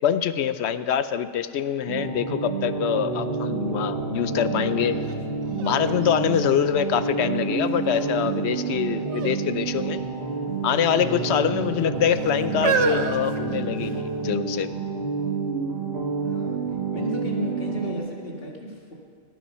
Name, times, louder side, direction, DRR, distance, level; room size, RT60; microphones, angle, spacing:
voice 1, 0.0-5.0 5.6-10.0 10.6-14.7, left 9 dB, 75° left, 13 dB, 0.9 m, -24 dB
sound 1, 1.9-18.0, right 4 dB, 65° right, 1.9 m, -29 dB
sound 2, 5.0-5.1 5.6-7.1 7.7-8.2 9.0-9.4 9.7-9.8 10.7-11.4 12.1-14.1 14.9-15.0, right 5 dB, 85° right, 1.2 m, -29 dB
voice 2, 16.2-16.6 16.9-18.9, left 1 dB, 55° left, -1 dB, 2.2 m, -34 dB
18.0 x 8.9 x 5.6 m, 2.3 s
omnidirectional pair, 1.1 m